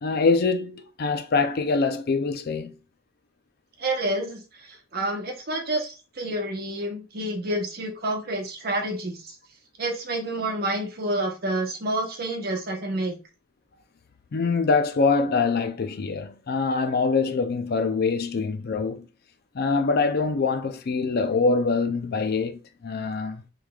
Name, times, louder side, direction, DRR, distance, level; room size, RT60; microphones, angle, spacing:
voice 1, 0.0-2.7 14.3-19.1 19.5-23.4, left 4 dB, 50° left, 0.4 m, -24 dB
voice 2, 3.8-9.3 9.8-13.2, right 1 dB, 55° right, 0.8 m, -29 dB
3.5 x 3.2 x 2.3 m
head